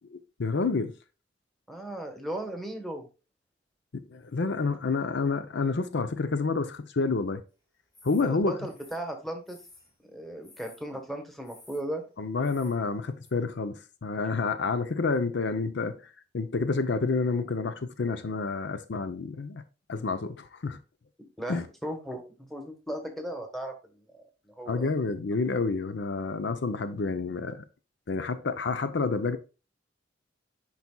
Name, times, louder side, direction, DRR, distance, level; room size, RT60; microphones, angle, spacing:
voice 1, 0.1-0.9 4.1-7.4 8.0-8.7 12.2-19.6 19.9-20.8 21.5-21.7 24.7-27.6 28.1-29.4, left 4 dB, 65° left, 0.6 m, -29 dB
voice 2, 1.7-3.1 8.1-9.6 10.1-12.0 21.4-24.9, right 1 dB, ahead, 1.3 m, -37 dB
sound 1, 7.9-8.3 8.7-9.9 10.4-10.9 11.4-11.8 12.4-12.8 13.2-13.3, left 2 dB, 20° left, 2.5 m, -55 dB
10.5 x 4.1 x 2.3 m
head